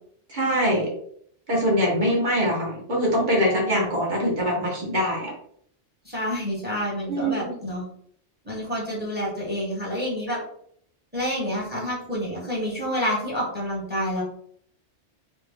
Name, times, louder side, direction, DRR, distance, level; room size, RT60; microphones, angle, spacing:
voice 1, 0.3-0.9 1.5-5.3 7.1-7.5, equal, 40° right, -3 dB, 1.3 m, -23 dB
voice 2, 6.0-7.8 8.4-10.4 11.1-14.2, equal, 10° right, -4 dB, 1.2 m, -28 dB
3.2 x 2.4 x 3.5 m, 0.66 s
omnidirectional pair, 1.3 m